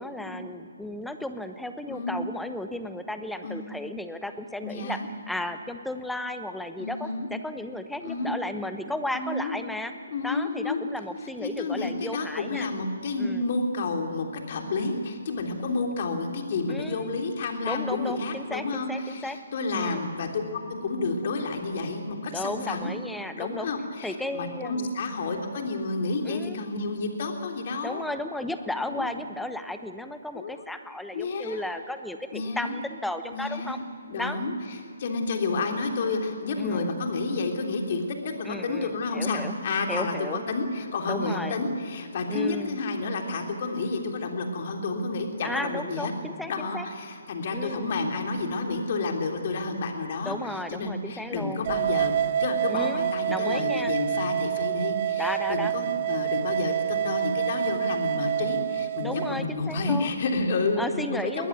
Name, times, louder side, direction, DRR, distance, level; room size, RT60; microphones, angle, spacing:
voice 1, 0.0-5.0 5.3-9.9 10.2-12.7 13.2-13.5 16.7-17.1 17.6-19.4 19.7-20.1 22.3-23.7 24.0-24.9 26.2-26.6 27.8-33.8 34.2-34.4 36.6-37.0 38.4-39.5 39.9-40.4 41.1-41.5 42.3-42.8 45.4-46.9 47.5-47.9 50.2-51.6 52.7-53.9 55.2-55.7 59.0-60.1 60.8-61.5, left 1 dB, ahead, 9 dB, 1.0 m, -34 dB
voice 2, 1.9-2.3 3.4-3.7 4.6-5.1 6.8-7.3 8.0-8.3 9.1-9.6 10.1-10.8 11.4-20.3 20.8-23.0 23.3-28.0 28.8-29.2 30.3-30.6 31.1-31.6 32.3-32.8 33.3-33.8 34.1-34.5 35.0-46.1 46.5-50.4 50.7-61.5, left 3 dB, 40° left, 3 dB, 3.4 m, -30 dB
sound 1, 51.7-59.3, right 11 dB, 35° right, 0.7 m, -27 dB
21.5 x 19.5 x 9.5 m, 2.4 s
figure-of-eight pair, 135°, 0 cm